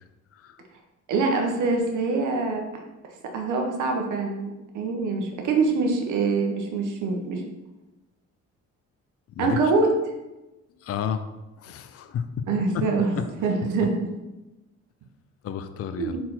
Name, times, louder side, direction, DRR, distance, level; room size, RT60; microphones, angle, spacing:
voice 1, 0.3-0.7 9.3-9.6 10.8-12.3 12.7-12.8 13.1-13.2 15.4-16.2, left 8 dB, 50° left, 9 dB, 0.5 m, -32 dB
voice 2, 1.1-2.8 3.3-7.4 9.4-9.9 12.5-14.0 16.0-16.2, right 4 dB, 80° right, 3 dB, 1.2 m, -24 dB
4.3 x 4.2 x 5.7 m, 1.0 s
cardioid pair, 90°, 30 cm